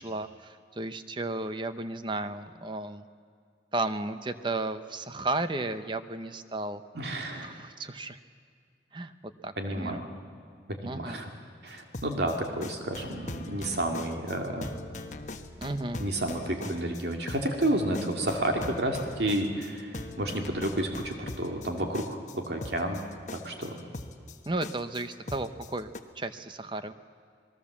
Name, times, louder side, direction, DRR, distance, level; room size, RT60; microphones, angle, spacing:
voice 1, 0.0-3.1 3.7-6.8 7.3-8.2 8.9-10.0 10.8-11.2 15.6-16.0 24.5-26.9, right 2 dB, 25° right, 11 dB, 0.8 m, -34 dB
voice 2, 6.9-7.5 9.6-10.1 10.7-11.3 11.6-14.7 16.0-23.0 23.3-23.8, right 1 dB, 70° right, 3 dB, 2.4 m, -31 dB
sound 1, 11.8-26.0, left 2 dB, 40° left, 1.2 m, -41 dB
27.0 x 20.0 x 7.3 m, 2.2 s
head